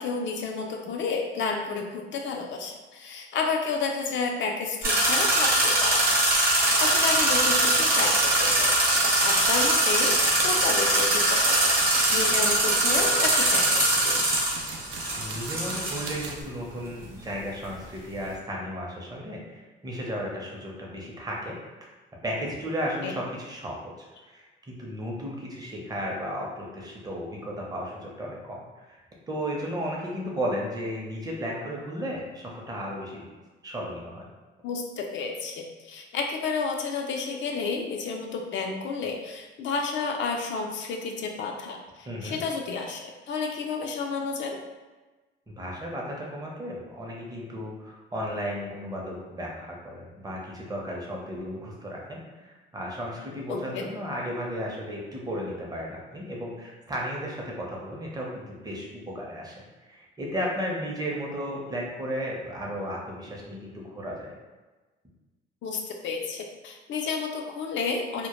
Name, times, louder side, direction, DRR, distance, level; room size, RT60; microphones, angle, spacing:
voice 1, 0.0-8.7 9.0-14.2 23.0-23.1 34.6-43.0 43.3-44.6 53.5-53.8 65.6-68.3, left 4 dB, 70° left, 2 dB, 0.4 m, -31 dB
sound 1, 4.8-16.3, right 1 dB, 50° right, 0.8 m, -22 dB
sound 2, 6.3-6.4 6.6-16.4, right 4 dB, 75° right, 0.4 m, -38 dB
voice 2, 15.2-21.6 22.2-23.9 24.2-29.0 29.3-33.3 33.6-34.3 42.1-42.4 45.5-64.3, equal, 20° right, -2 dB, 0.6 m, -34 dB
2.1 x 2.0 x 2.9 m, 1.2 s
cardioid pair, 90°, 20 cm